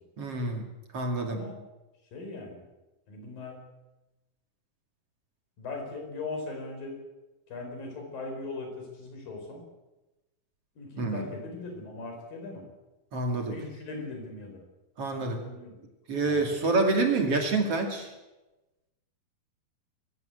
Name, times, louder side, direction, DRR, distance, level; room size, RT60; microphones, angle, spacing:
voice 1, 0.2-0.6 0.9-1.4 11.0-11.3 13.1-13.6 15.0-15.4 16.1-18.1, right 3 dB, 45° right, 3 dB, 3.0 m, -27 dB
voice 2, 2.1-2.6 3.1-3.6 5.6-7.0 7.5-9.6 10.8-12.7 13.3-14.6 15.1-15.8 16.3-16.6, left 3 dB, 65° left, 3 dB, 6.4 m, -39 dB
22.5 x 16.0 x 8.0 m, 1.1 s
omnidirectional pair, 4.4 m